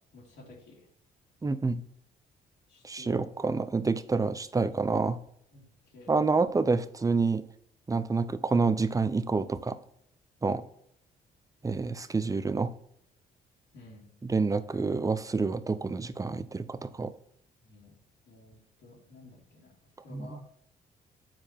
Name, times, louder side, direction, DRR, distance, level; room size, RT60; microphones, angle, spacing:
voice 1, 0.1-0.8 2.7-3.3 5.5-5.6 5.9-6.2 13.7-14.1 17.6-17.9 18.3-19.7 20.0-20.4, left 2 dB, 70° left, -4 dB, 2.6 m, -51 dB
voice 2, 1.4-1.8 2.8-5.2 6.1-7.4 7.9-9.8 10.4-10.6 11.6-12.7 14.2-17.1 20.1-20.4, right 4 dB, 15° right, 14 dB, 0.6 m, -28 dB
7.5 x 4.8 x 4.3 m, 0.70 s
supercardioid pair, 65°, 19 cm